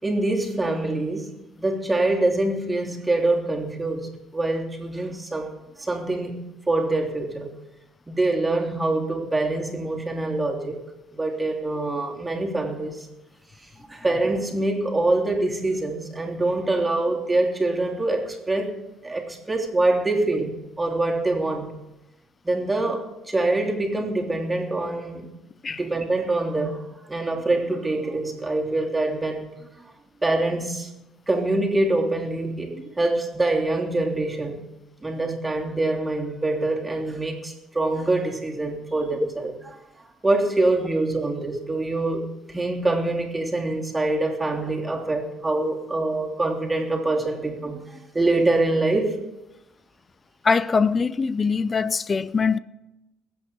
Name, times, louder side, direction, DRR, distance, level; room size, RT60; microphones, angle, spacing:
voice 1, 0.0-5.5 5.8-7.5 8.1-10.8 11.1-13.0 13.9-18.8 19.0-21.7 22.4-25.3 25.8-29.5 30.2-30.9 31.3-34.6 35.0-39.5 40.2-42.2 42.5-49.2, right 2 dB, 15° right, 3.1 m, -25 dB
voice 2, 50.4-52.6, left 5 dB, 35° left, 0.5 m, -22 dB
21.5 x 8.7 x 4.6 m
hypercardioid pair, 50°, 0 cm